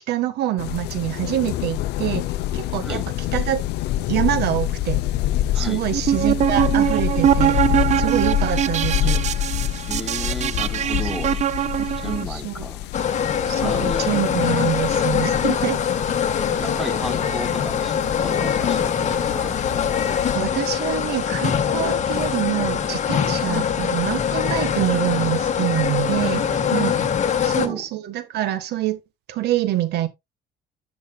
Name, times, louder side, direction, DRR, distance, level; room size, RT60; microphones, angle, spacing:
voice 1, 0.1-2.2 2.5-3.0 3.3-3.6 4.1-5.0 5.5-7.6 8.0-9.2 11.8-12.7 13.5-15.8 20.3-26.9 27.4-29.0 29.3-30.1, right 13 dB, 75° right, 1.5 m, -25 dB
sound 1, 0.6-20.3, left 13 dB, 80° left, 0.6 m, -27 dB
sound 2, 5.9-12.2, right 10 dB, 45° right, 0.4 m, -22 dB
voice 2, 9.9-11.4 12.0-12.9 13.6-14.2 16.5-19.6 26.3-26.9 27.4-27.9, equal, ahead, 2.1 m, -33 dB
sound 3, 12.9-27.7, left 8 dB, 45° left, 1.4 m, -23 dB
11.0 x 6.2 x 2.3 m
cardioid pair, 110°, 17 cm